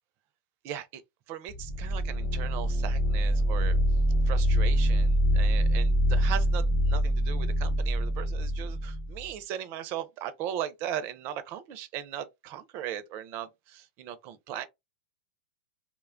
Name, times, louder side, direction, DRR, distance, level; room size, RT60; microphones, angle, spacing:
voice 1, 0.6-1.0 1.3-3.8 4.3-14.7, right 10 dB, 45° right, 0.5 m, -38 dB
sound 1, 1.5-9.3, equal, 15° left, 0.8 m, -25 dB
2.9 x 2.2 x 2.4 m
hypercardioid pair, 105°, 6 cm